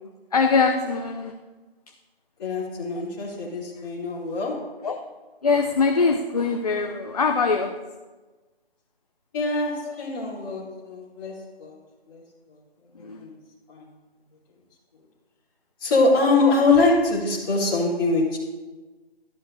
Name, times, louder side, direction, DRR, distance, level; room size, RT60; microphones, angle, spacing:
voice 1, 0.3-1.3 4.8-5.0 5.4-7.8 9.9-10.1 13.0-13.2 16.4-16.5, left 4 dB, 40° left, 5 dB, 0.6 m, -22 dB
voice 2, 2.4-4.7 9.3-11.8 12.1-12.2 13.2-13.3 13.7-13.8 15.8-18.4, left 3 dB, 20° left, -7 dB, 3.5 m, -23 dB
17.0 x 13.0 x 2.7 m, 1.3 s
figure-of-eight pair, 160°, 31 cm